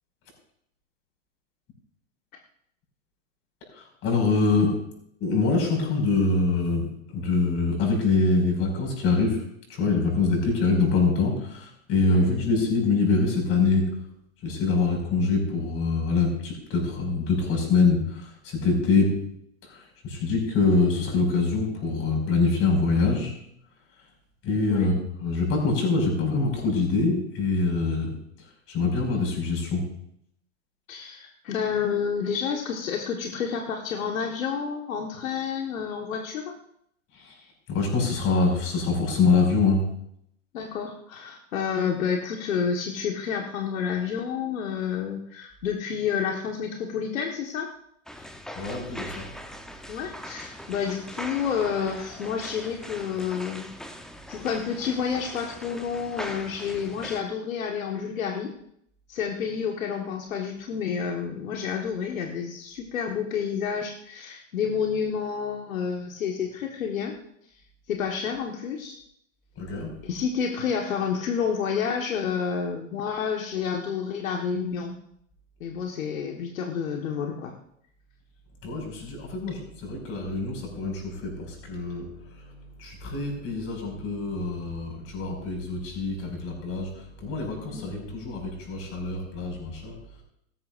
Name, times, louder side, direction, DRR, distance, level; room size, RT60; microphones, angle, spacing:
voice 1, 3.7-4.8 5.2-14.0 14.4-19.2 19.6-23.3 23.9-24.1 24.4-28.1 28.4-29.9 37.1-39.9 48.1-49.3 69.6-70.1 78.6-90.2, left 3 dB, 35° left, 1 dB, 5.9 m, -25 dB
voice 2, 30.9-36.6 40.5-47.7 49.9-53.7 54.3-58.5 59.1-67.1 67.9-69.0 70.0-75.0 75.6-77.5 87.7-87.9, left 7 dB, 75° left, 1 dB, 1.7 m, -29 dB
sound 1, 48.1-57.2, equal, ahead, 0.9 m, -41 dB
17.5 x 13.5 x 2.6 m, 0.71 s
hypercardioid pair, 120°, 40 cm